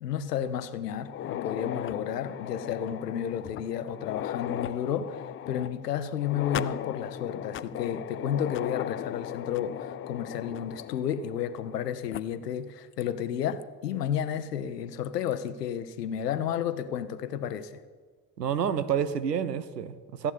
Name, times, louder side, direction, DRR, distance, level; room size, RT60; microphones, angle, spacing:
voice 1, 0.0-17.8, left 9 dB, 80° left, 0.8 m, -32 dB
sound 1, 0.9-10.8, left 2 dB, 10° left, 1.8 m, -51 dB
sound 2, 1.0-11.8 12.1-12.2 13.0-13.1 13.6-13.7 15.0-15.3, left 12 dB, 30° left, 0.4 m, -37 dB
voice 2, 18.4-20.3, right 8 dB, 85° right, 0.7 m, -29 dB
15.0 x 8.0 x 8.3 m
figure-of-eight pair, 50°, 47 cm